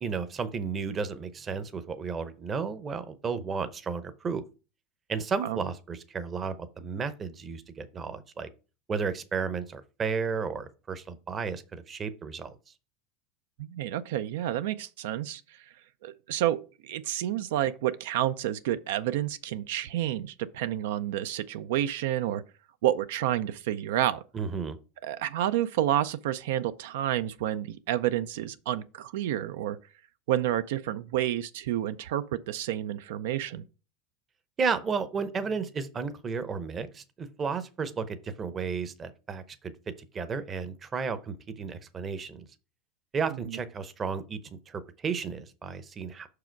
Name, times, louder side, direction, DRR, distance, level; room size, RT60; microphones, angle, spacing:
voice 1, 0.0-4.4 5.1-8.5 8.9-12.5 24.3-24.8 34.6-39.7 40.1-42.4 43.1-44.4 44.7-46.3, right 5 dB, 25° right, 0.7 m, -33 dB
voice 2, 13.6-15.6 16.0-22.4 22.8-24.2 25.0-29.8 30.3-33.6 43.5-43.6, right 12 dB, 80° right, 0.4 m, -29 dB
5.9 x 4.9 x 4.5 m
supercardioid pair, 140°, 0 cm